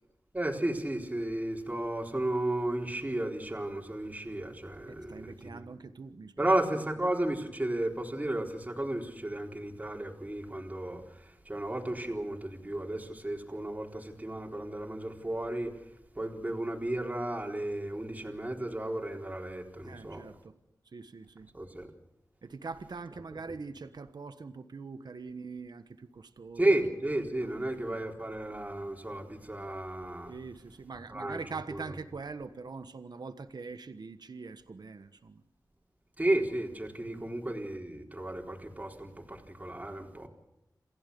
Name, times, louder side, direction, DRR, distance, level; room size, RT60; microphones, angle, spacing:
voice 1, 0.3-5.6 6.4-15.8 16.2-20.2 21.5-21.9 26.6-30.3 31.1-31.4 31.7-31.8 36.2-40.3, right 1 dB, 20° right, 4.1 m, -33 dB
voice 2, 4.9-6.5 6.7-6.8 19.8-20.6 20.9-21.5 22.4-26.7 27.4-28.0 30.3-35.4 37.1-37.3, right 4 dB, 75° right, 1.3 m, -43 dB
28.0 x 16.0 x 7.0 m
wide cardioid pair, 65°, 7 cm